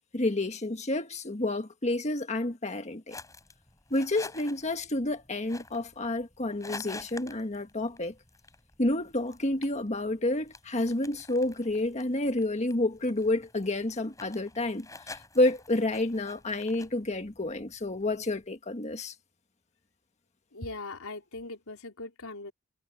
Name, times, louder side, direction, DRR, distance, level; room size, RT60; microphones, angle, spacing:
voice 1, 0.1-3.1 3.9-8.1 8.8-19.1, left 2 dB, 30° left, 1.6 m, -29 dB
sound 1, 3.1-18.4, left 3 dB, 15° left, 7.6 m, -49 dB
voice 2, 20.5-22.5, left 2 dB, 90° left, 3.9 m, -40 dB
head